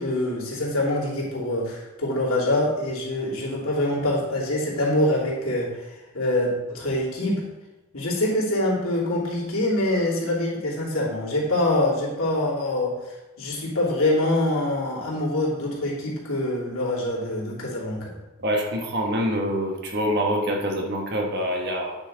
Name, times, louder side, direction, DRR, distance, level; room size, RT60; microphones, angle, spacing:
voice 1, 0.0-7.4 7.9-18.1, left 1 dB, 75° left, -5 dB, 2.9 m, -25 dB
voice 2, 18.4-22.0, equal, 50° right, 1 dB, 1.4 m, -25 dB
9.7 x 5.9 x 3.9 m, 1.1 s
head